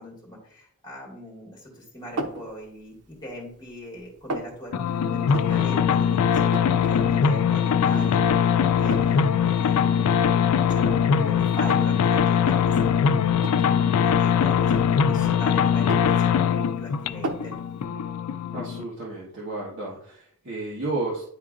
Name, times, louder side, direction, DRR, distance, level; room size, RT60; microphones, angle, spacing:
voice 1, 0.0-14.8 15.0-16.5 16.8-17.5, equal, 20° left, -4 dB, 2.1 m, -40 dB
sound 1, 2.2-2.5 3.0-3.7 3.9-4.5 5.3-5.7 6.0-6.1 6.3-6.9 7.3-7.4 7.9-8.4 8.9-9.2 10.0-10.1 10.6-12.0 12.4-12.6 13.4-13.7 14.7-15.4 15.7-16.7 17.2-17.5, right 1 dB, 90° right, 0.8 m, -34 dB
sound 2, 4.7-18.8, left 7 dB, 80° left, 0.3 m, -21 dB
voice 2, 18.5-21.2, right 2 dB, 55° right, -5 dB, 1.2 m, -32 dB
10.5 x 3.7 x 2.5 m, 0.64 s
head